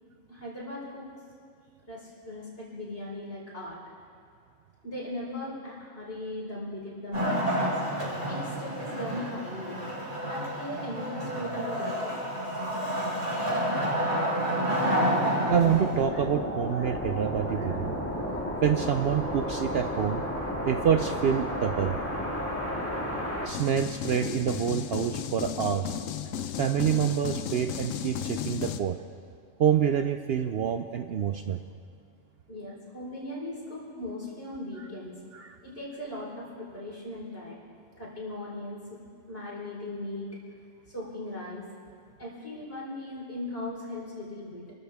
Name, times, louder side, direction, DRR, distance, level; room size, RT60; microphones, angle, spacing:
voice 1, 0.3-1.1 1.8-3.8 4.8-7.8 8.2-9.8 10.2-12.1 12.6-12.9 32.5-35.1 35.6-37.6 38.0-39.0 39.3-40.3 40.9-41.6 42.2-44.7, left 1 dB, 45° left, -5 dB, 4.8 m, -38 dB
Wood, 7.1-16.0, equal, 25° right, 5.4 m, -29 dB
voice 2, 15.4-17.9 18.6-20.2 20.7-22.0 23.4-25.9 26.6-29.0 29.6-31.6 34.8-34.9 35.3-35.6, right 8 dB, 60° right, 7 dB, 0.7 m, -27 dB
sound 1, 15.5-23.5, equal, 10° left, 1.9 m, -32 dB
sound 2, 23.5-28.8, left 8 dB, 85° left, 1.1 m, -34 dB
28.0 x 14.0 x 3.5 m, 2.3 s
omnidirectional pair, 1.3 m